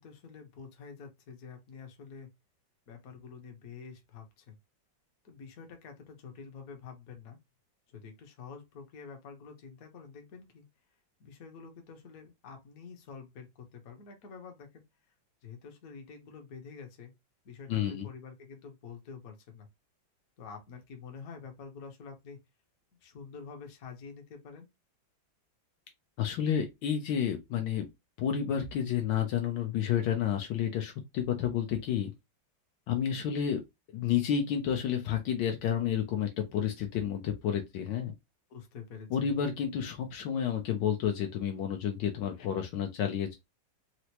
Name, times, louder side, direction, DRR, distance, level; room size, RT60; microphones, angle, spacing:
voice 1, 0.0-2.3 2.9-4.6 5.2-7.4 7.9-10.7 11.2-14.8 15.4-17.1 17.4-19.7 20.4-22.4 23.0-24.7 38.5-39.3, left 5 dB, 55° left, 1.2 m, -48 dB
voice 2, 17.7-18.1 26.2-27.9 28.2-32.1 32.9-33.6 33.9-38.1 39.1-43.3, left 9 dB, 75° left, 1.2 m, -30 dB
4.4 x 2.0 x 2.8 m
omnidirectional pair, 2.1 m